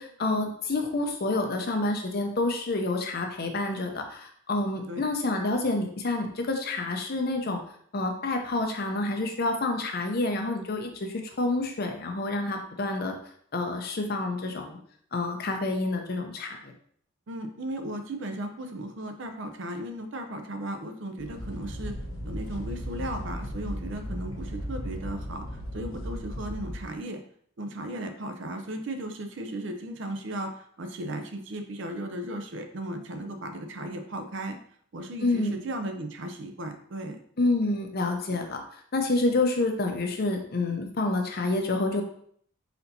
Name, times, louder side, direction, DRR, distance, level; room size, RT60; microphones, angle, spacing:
voice 1, 0.0-7.6 7.9-13.2 13.5-14.8 15.1-16.7 35.2-35.6 37.4-38.6 38.9-42.0, left 2 dB, 45° left, 4 dB, 0.6 m, -28 dB
voice 2, 17.3-21.9 22.2-25.4 25.7-27.2 27.6-34.6 34.9-37.2, right 1 dB, 60° right, 6 dB, 0.5 m, -36 dB
sound 1, 21.2-26.8, equal, 70° left, 0.9 m, -36 dB
4.3 x 4.0 x 2.7 m, 0.62 s
head